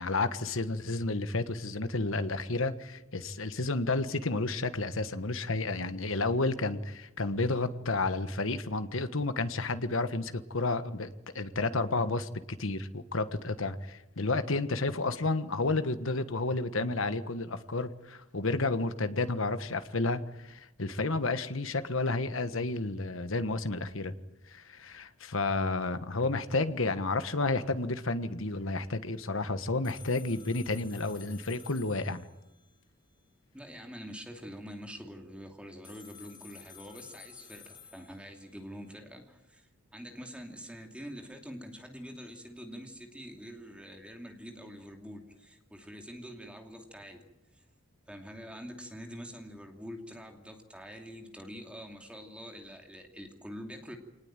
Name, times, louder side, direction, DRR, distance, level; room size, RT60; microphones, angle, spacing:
voice 1, 0.0-24.1 24.5-32.2, left 3 dB, 65° left, 11 dB, 1.4 m, -31 dB
sound 1, 29.8-32.8 35.8-38.7, left 8 dB, 20° left, 3.1 m, -53 dB
voice 2, 33.5-47.3 47.5-47.6 48.1-54.0, equal, 5° right, 3 dB, 2.7 m, -45 dB
25.5 x 19.5 x 9.0 m, 0.95 s
head